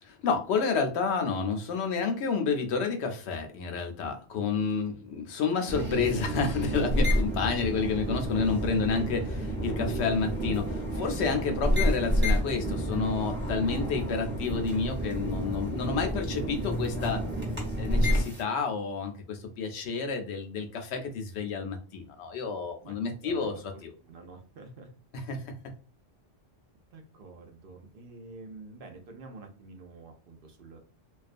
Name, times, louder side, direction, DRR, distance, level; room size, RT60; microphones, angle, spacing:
voice 1, 0.0-17.2 17.8-23.5 23.8-23.9 25.1-25.6, left 5 dB, 80° left, 5 dB, 0.8 m, -30 dB
sound 1, 5.7-18.4, equal, 10° right, 0.6 m, -29 dB
voice 2, 23.2-24.9 26.9-30.8, right 3 dB, 65° right, 4 dB, 0.7 m, -48 dB
2.4 x 2.2 x 2.4 m, 0.37 s
omnidirectional pair, 1.1 m